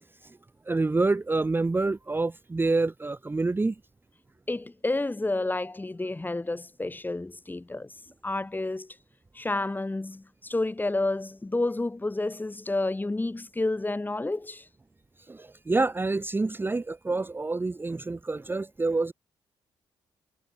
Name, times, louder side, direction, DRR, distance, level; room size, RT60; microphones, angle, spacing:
voice 1, 0.7-3.7 15.3-19.1, right 3 dB, 20° right, 0.8 m, -27 dB
voice 2, 4.5-7.9 8.2-9.0 9.3-14.7, left 2 dB, 15° left, 1.6 m, -30 dB
figure-of-eight pair, 40°, 11 cm